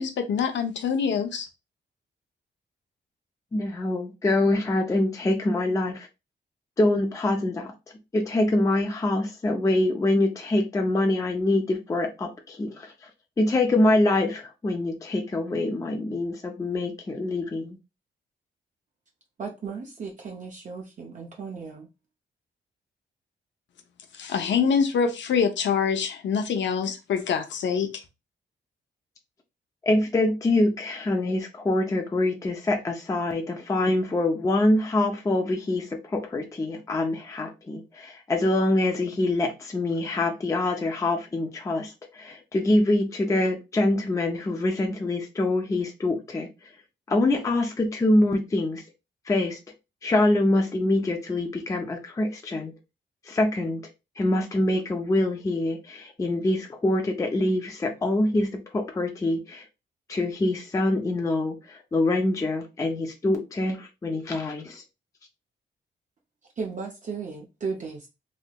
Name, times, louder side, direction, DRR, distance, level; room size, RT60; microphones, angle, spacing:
voice 1, 0.0-1.5 24.2-27.9, left 6 dB, 70° left, 0.6 m, -25 dB
voice 2, 3.5-6.1 6.8-7.7 8.1-12.9 13.4-17.8 29.8-46.5 47.1-48.8 49.3-49.6 50.0-52.7 53.3-53.8 54.2-59.6 60.1-64.8, left 2 dB, 15° left, 0.4 m, -25 dB
voice 3, 19.4-21.9 66.6-68.1, right 5 dB, 40° right, 0.5 m, -35 dB
3.2 x 2.8 x 2.2 m
wide cardioid pair, 170°, 19 cm